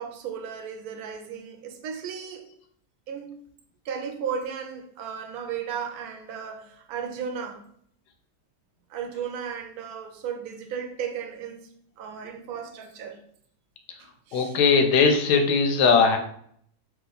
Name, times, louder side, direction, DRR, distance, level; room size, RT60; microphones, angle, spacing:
voice 1, 0.0-2.5 3.1-3.3 3.8-7.6 8.9-11.6 12.0-13.2 14.0-14.6, right 7 dB, 75° right, 1.0 m, -35 dB
voice 2, 14.3-16.2, left 5 dB, 85° left, 1.2 m, -19 dB
3.0 x 2.9 x 4.0 m
omnidirectional pair, 1.7 m